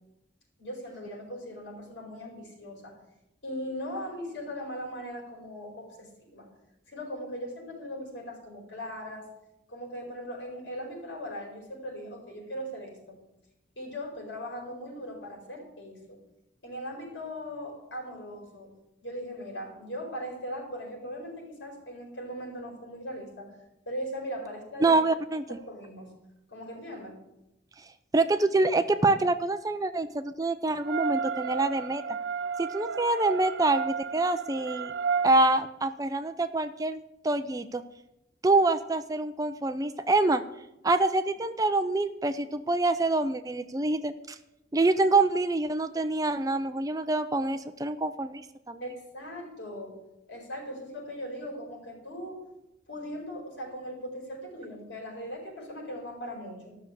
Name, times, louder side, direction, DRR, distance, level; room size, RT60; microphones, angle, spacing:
voice 1, 0.6-2.9 3.4-6.5 6.9-9.3 9.7-13.2 13.8-16.2 16.6-18.7 19.0-23.5 23.9-25.0 25.7-26.1 26.5-27.2 48.8-50.0 50.3-52.4 52.9-56.8, equal, 75° left, 0 dB, 4.8 m, -39 dB
voice 2, 24.8-25.6 28.1-32.0 32.6-34.9 35.2-37.8 38.4-40.4 40.8-44.4 44.7-48.8, right 2 dB, 20° right, 11 dB, 0.4 m, -26 dB
sound 1, 30.8-35.3, right 6 dB, 80° right, 0.5 m, -32 dB
12.5 x 6.6 x 8.1 m, 0.90 s
head